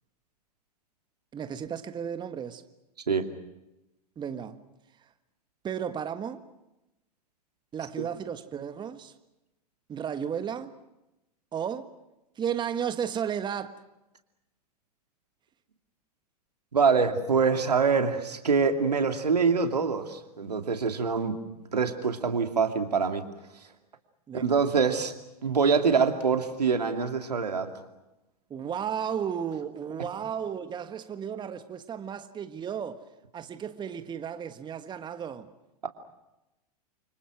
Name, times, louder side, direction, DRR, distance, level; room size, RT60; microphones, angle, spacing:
voice 1, 1.3-2.6 4.2-4.6 5.6-6.5 7.7-9.1 9.9-10.8 11.5-11.9 12.4-13.8 24.3-24.6 28.5-33.0 33.3-35.5, right 8 dB, 20° right, 1.6 m, -34 dB
voice 2, 16.7-21.4 21.7-23.3 24.3-25.1 25.4-27.7, right 5 dB, 85° right, 2.7 m, -25 dB
30.0 x 25.5 x 6.1 m
hypercardioid pair, 100°, 20 cm